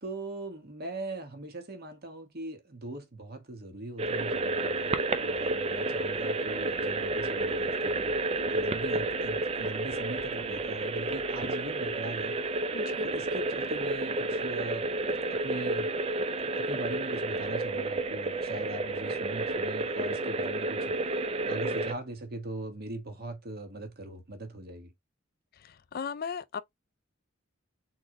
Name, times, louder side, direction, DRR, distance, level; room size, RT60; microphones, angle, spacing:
voice 1, 0.0-5.0 5.2-8.2 8.5-12.4 13.0-14.9 15.3-15.9 16.5-24.9, right 2 dB, 45° right, 1.2 m, -40 dB
sound 1, 4.0-21.9, right 2 dB, 30° right, 0.5 m, -31 dB
voice 2, 12.7-13.1 25.5-26.6, left 6 dB, 45° left, 0.4 m, -37 dB
3.9 x 3.0 x 3.7 m
head